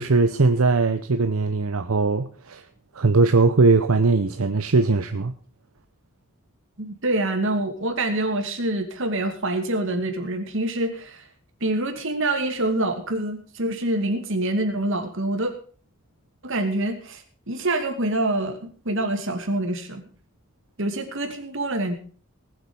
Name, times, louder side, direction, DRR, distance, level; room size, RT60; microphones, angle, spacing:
voice 1, 0.0-2.6 2.9-5.3, right 3 dB, 85° right, 9 dB, 0.8 m, -20 dB
voice 2, 6.8-11.2 11.6-15.5 16.4-18.6 18.8-20.0 20.8-21.9, right 1 dB, 65° right, 5 dB, 2.6 m, -26 dB
19.5 x 7.9 x 5.4 m, 0.42 s
head